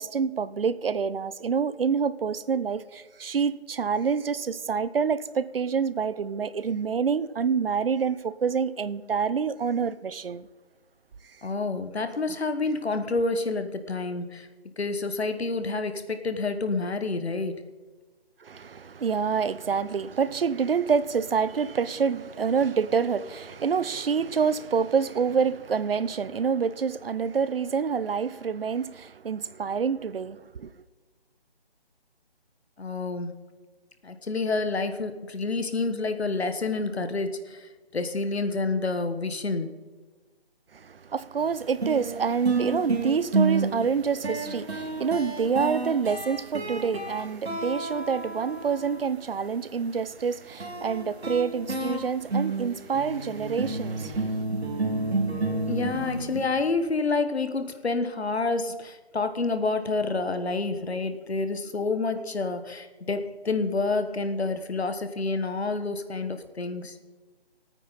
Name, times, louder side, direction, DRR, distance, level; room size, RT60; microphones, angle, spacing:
voice 1, 0.0-10.5 18.4-30.7 40.7-54.4, right 6 dB, 65° right, 0.6 m, -27 dB
voice 2, 11.4-14.5 14.8-17.6 32.8-33.3 34.0-39.7 55.7-67.0, left 3 dB, 90° left, 1.4 m, -28 dB
sound 1, 41.4-41.5 41.8-49.1 50.6-56.4, right 3 dB, 90° right, 2.6 m, -30 dB
18.0 x 9.1 x 4.1 m
figure-of-eight pair, 165°, 31 cm